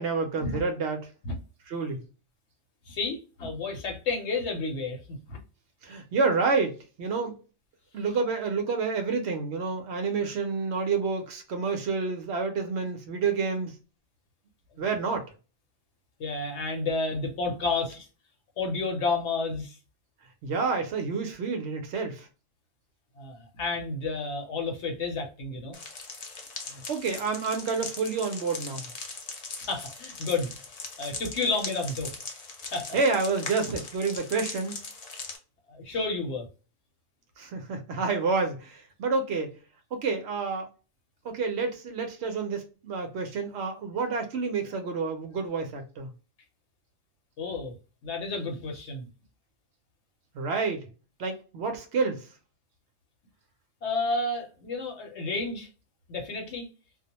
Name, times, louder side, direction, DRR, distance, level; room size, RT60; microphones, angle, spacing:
voice 1, 0.0-1.1 1.7-2.0 5.8-7.4 7.9-13.8 14.8-15.2 20.4-22.3 26.7-28.9 32.9-34.8 37.4-39.6 39.9-40.7 41.2-46.1 50.3-50.9 51.2-52.3, right 4 dB, 65° right, 0.8 m, -29 dB
voice 2, 2.9-5.4 16.2-18.1 18.6-19.8 23.2-25.8 29.7-30.5 31.0-32.1 32.7-32.9 33.7-33.8 35.7-36.5 47.4-47.7 48.0-49.1 53.8-55.7 56.1-56.7, left 3 dB, 65° left, 1.0 m, -31 dB
sound 1, 25.7-35.4, left 4 dB, 50° left, 0.4 m, -40 dB
2.3 x 2.1 x 2.7 m
omnidirectional pair, 1.3 m